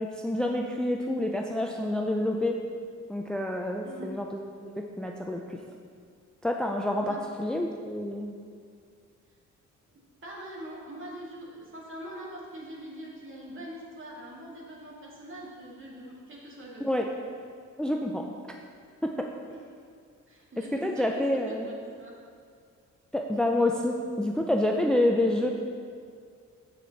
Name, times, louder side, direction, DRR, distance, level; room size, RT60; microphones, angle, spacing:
voice 1, 0.0-2.6 3.1-4.6 5.0-5.6 6.4-8.3 16.8-17.1 17.8-18.3 19.0-19.3 20.6-21.7 23.1-25.5, left 1 dB, 5° left, 2 dB, 0.5 m, -28 dB
voice 2, 10.2-17.0 19.5-19.6 20.3-21.1 21.3-22.2, right 1 dB, 40° right, -4 dB, 2.2 m, -43 dB
7.7 x 7.2 x 4.1 m, 2.2 s
cardioid pair, 90°, 30 cm